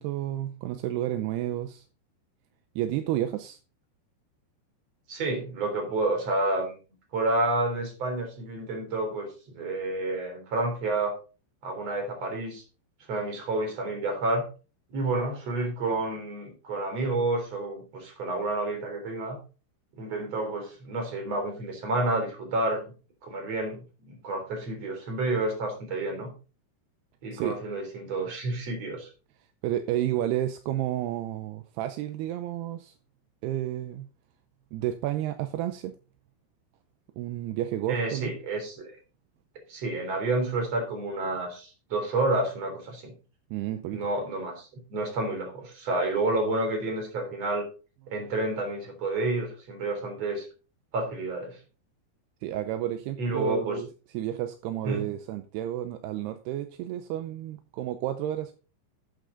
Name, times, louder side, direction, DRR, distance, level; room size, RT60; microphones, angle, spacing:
voice 1, 0.0-1.8 2.8-3.6 27.3-27.6 29.6-32.9 33.4-34.1 34.7-35.9 37.2-38.3 43.5-44.0 52.4-53.9 54.1-58.5, right 12 dB, 80° right, 9 dB, 2.4 m, -31 dB
voice 2, 5.1-6.8 7.1-11.1 11.6-12.6 13.1-14.4 14.9-19.4 19.9-22.9 23.2-26.3 27.2-29.1 37.9-38.9 39.7-43.1 43.9-47.7 48.1-50.5 50.9-51.6 53.2-53.8 54.8-55.1, right 2 dB, 35° right, 3 dB, 4.3 m, -29 dB
11.5 x 8.4 x 3.9 m, 0.34 s
omnidirectional pair, 5.4 m